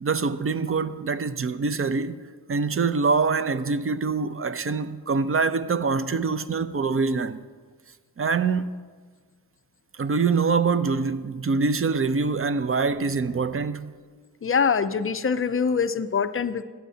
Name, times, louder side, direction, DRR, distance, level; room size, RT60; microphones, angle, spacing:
voice 1, 0.0-2.2 2.5-7.4 8.2-8.7 9.9-13.9, right 4 dB, 30° right, 0.6 m, -24 dB
voice 2, 14.4-16.6, left 6 dB, 30° left, 0.5 m, -24 dB
15.5 x 9.2 x 2.8 m
cardioid pair, 50°, 43 cm